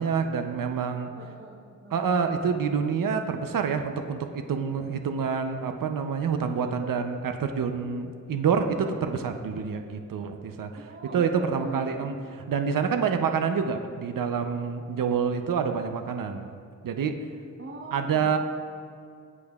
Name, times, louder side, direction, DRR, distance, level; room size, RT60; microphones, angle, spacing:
voice 1, 0.0-1.1 1.9-10.9 11.1-12.1 12.5-16.5 16.8-17.2 17.9-18.4, right 6 dB, 75° right, 6 dB, 0.7 m, -27 dB
voice 2, 1.2-2.2 10.9-12.1 17.6-18.4, right 2 dB, 40° right, -2 dB, 1.1 m, -41 dB
16.0 x 8.4 x 2.4 m, 2.3 s
wide cardioid pair, 85°, 33 cm